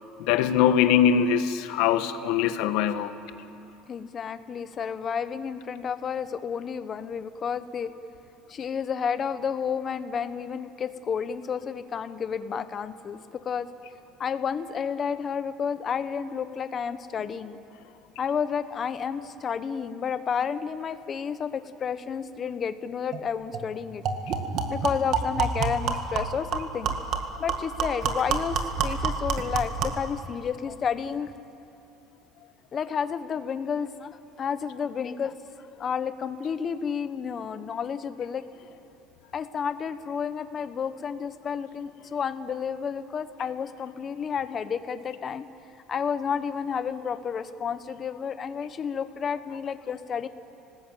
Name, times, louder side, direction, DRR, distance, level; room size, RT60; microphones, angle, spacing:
voice 1, 0.2-3.1, left 9 dB, 65° left, 10 dB, 1.4 m, -22 dB
voice 2, 3.9-7.9 8.5-13.7 14.2-17.6 18.2-24.0 24.7-26.9 27.4-31.3 32.7-35.3 35.8-38.4 39.3-45.5 45.9-50.3, left 7 dB, 25° left, 12 dB, 0.9 m, -31 dB
sound 1, 23.1-23.2 23.5-23.7 24.0-30.1, right 5 dB, 40° right, 1.9 m, -28 dB
30.0 x 19.5 x 9.2 m, 2.7 s
cardioid pair, 175°, 0 cm